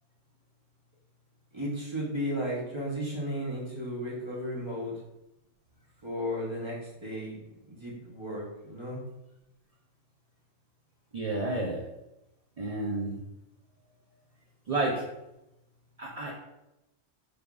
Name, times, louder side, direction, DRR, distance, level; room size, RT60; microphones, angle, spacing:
voice 1, 1.5-5.0 6.0-9.0, equal, 30° right, -4 dB, 0.7 m, -34 dB
voice 2, 11.1-11.8 12.6-13.2 14.7-15.0 16.0-16.3, right 2 dB, 65° right, -2 dB, 0.3 m, -30 dB
3.5 x 3.4 x 2.3 m, 0.91 s
omnidirectional pair, 1.3 m